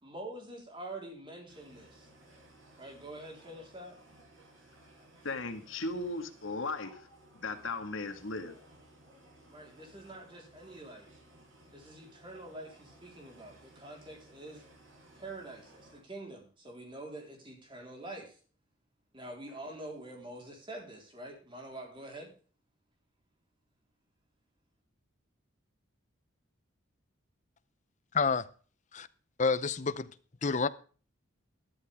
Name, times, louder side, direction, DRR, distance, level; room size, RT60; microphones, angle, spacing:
voice 1, 0.0-2.1 2.8-4.0 9.5-11.1 11.7-14.6 15.2-18.4 19.1-22.3, right 1 dB, 25° right, 3.9 m, -46 dB
sound 1, 1.5-16.0, right 1 dB, 70° right, 5.2 m, -59 dB
voice 2, 5.2-7.0 7.4-8.6, left 3 dB, 75° left, 1.8 m, -36 dB
voice 3, 28.1-28.5 28.9-29.1 29.4-30.1 30.4-30.7, left 4 dB, 35° left, 0.7 m, -28 dB
13.5 x 12.5 x 3.5 m
head